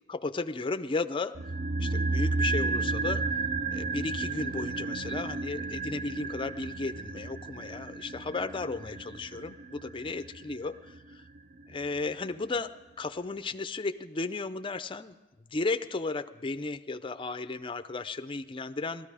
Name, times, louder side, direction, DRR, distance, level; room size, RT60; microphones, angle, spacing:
voice 1, 0.1-1.3 1.8-3.2 3.7-11.2 11.7-12.7 13.0-15.1 15.5-19.1, left 3 dB, 25° left, 11 dB, 0.5 m, -34 dB
sound 1, 1.3-11.6 11.9-12.0, right 3 dB, 45° right, 0.5 m, -32 dB
18.0 x 13.5 x 4.9 m, 1.1 s
head